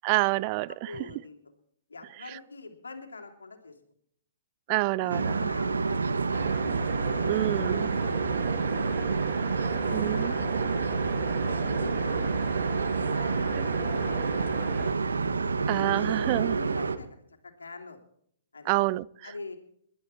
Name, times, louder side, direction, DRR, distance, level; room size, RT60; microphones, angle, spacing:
voice 1, 0.0-0.9 4.7-5.5 7.3-7.9 9.9-10.4 13.6-13.7 15.7-16.6 18.7-19.1, right 21 dB, 40° right, 0.5 m, -27 dB
voice 2, 0.7-1.4 1.9-3.7 4.7-6.6 7.1-7.2 7.5-9.1 9.7-12.6 13.1-15.0 16.0-18.0 18.5-18.7 19.2-19.6, left 3 dB, 90° left, 3.0 m, -44 dB
sound 1, 5.1-17.0, right 4 dB, 90° right, 1.5 m, -28 dB
sound 2, 6.3-14.9, right 4 dB, 15° right, 1.8 m, -40 dB
20.5 x 12.0 x 4.4 m
hypercardioid pair, 130°, 0 cm